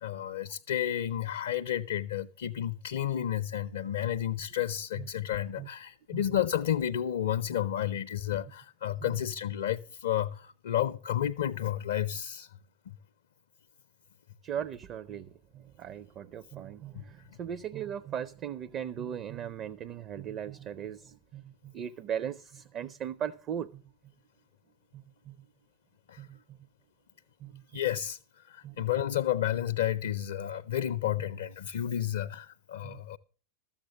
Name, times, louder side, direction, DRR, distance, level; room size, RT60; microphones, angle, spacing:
voice 1, 0.0-12.5 16.9-17.0 26.1-26.3 27.7-28.2 28.5-33.2, left 11 dB, 60° left, 0.5 m, -31 dB
voice 2, 14.4-23.8 24.9-25.4 26.2-26.4 27.4-27.6 28.6-28.8 32.8-33.0, right 9 dB, 35° right, 0.5 m, -38 dB
13.5 x 7.2 x 6.6 m
figure-of-eight pair, 90°, 0 cm